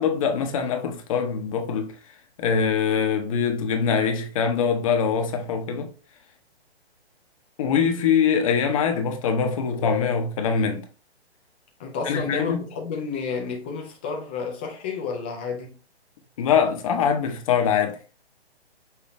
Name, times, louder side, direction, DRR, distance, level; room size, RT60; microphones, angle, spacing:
voice 1, 0.0-1.9 2.4-5.9 7.6-10.9 12.0-12.6 16.4-18.0, left 6 dB, 30° left, 0.8 m, -23 dB
voice 2, 11.8-15.8, left 5 dB, 10° left, 0.4 m, -30 dB
5.7 x 2.8 x 3.2 m
figure-of-eight pair, 135°, 32 cm